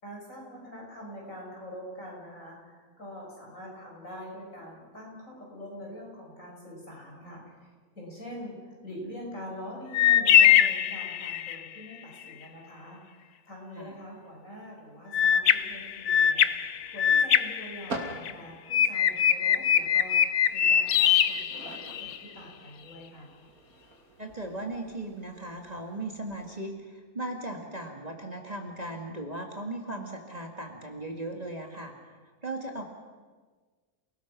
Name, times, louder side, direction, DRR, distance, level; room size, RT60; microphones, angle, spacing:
voice 1, 0.0-7.7 8.0-23.4, equal, 55° left, -2 dB, 6.7 m, -44 dB
sound 1, 9.9-11.7 15.1-18.3 18.7-22.2, left 9 dB, 80° left, 1.3 m, -23 dB
sound 2, 15.1-26.6, right 2 dB, 65° right, 3.5 m, -46 dB
voice 2, 24.2-31.9 32.4-32.9, right 1 dB, 25° right, 1 dB, 2.2 m, -37 dB
29.0 x 19.0 x 6.1 m, 1.4 s
omnidirectional pair, 1.6 m